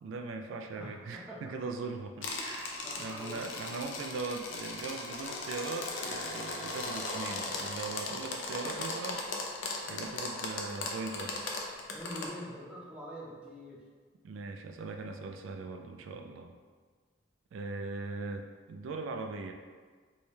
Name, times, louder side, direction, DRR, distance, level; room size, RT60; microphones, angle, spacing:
voice 1, 0.0-9.3 9.9-11.3 14.2-16.5 17.5-19.5, right 3 dB, 90° right, 5 dB, 0.3 m, -40 dB
voice 2, 0.7-1.5 2.8-3.4 11.9-13.8, equal, 5° right, -5 dB, 0.6 m, -44 dB
sound 1, 2.2-12.3, left 3 dB, 80° left, 0.5 m, -38 dB
3.3 x 2.2 x 4.3 m, 1.5 s
head